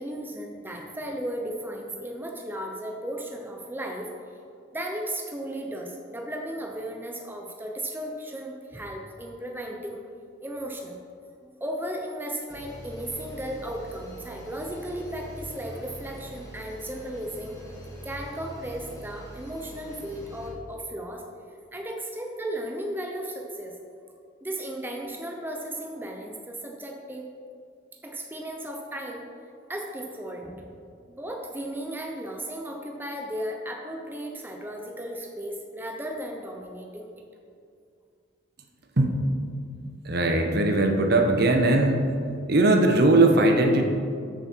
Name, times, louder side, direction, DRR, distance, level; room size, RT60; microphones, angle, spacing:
voice 1, 0.0-4.1 4.7-10.0 10.4-11.0 11.4-17.5 18.0-21.2 21.7-23.7 24.4-27.3 28.0-29.3 29.7-30.8 31.2-37.1, right 1 dB, 10° right, 1 dB, 0.8 m, -35 dB
sound 1, 12.5-20.5, equal, 15° left, 1.9 m, -43 dB
voice 2, 39.0-39.3 39.8-42.1 42.5-43.9, right 2 dB, 55° right, 3 dB, 1.2 m, -20 dB
13.5 x 7.2 x 4.6 m, 2.4 s
head